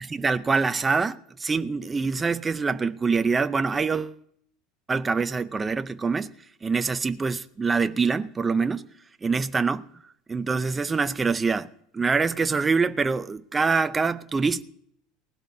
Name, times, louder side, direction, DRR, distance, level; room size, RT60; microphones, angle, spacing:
voice 1, 0.1-4.2 4.9-6.3 6.6-8.9 9.2-9.8 10.3-11.7 11.9-14.6, right 4 dB, 15° right, 0.5 m, -25 dB
19.0 x 16.0 x 2.7 m
cardioid pair, 155°, 0 cm